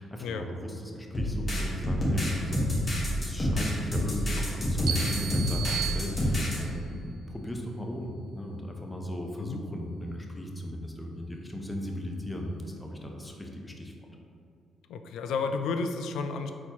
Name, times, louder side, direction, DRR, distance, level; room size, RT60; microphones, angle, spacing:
voice 1, 0.0-13.9, equal, 15° left, 1 dB, 0.6 m, -38 dB
sound 1, 1.1-6.6, equal, 30° left, 1.3 m, -28 dB
sound 2, 4.9-6.7, right 9 dB, 70° right, 0.4 m, -35 dB
voice 2, 14.9-16.5, left 4 dB, 80° left, 7 dB, 0.3 m, -31 dB
4.1 x 4.1 x 2.9 m, 2.5 s
cardioid pair, 90°, 0 cm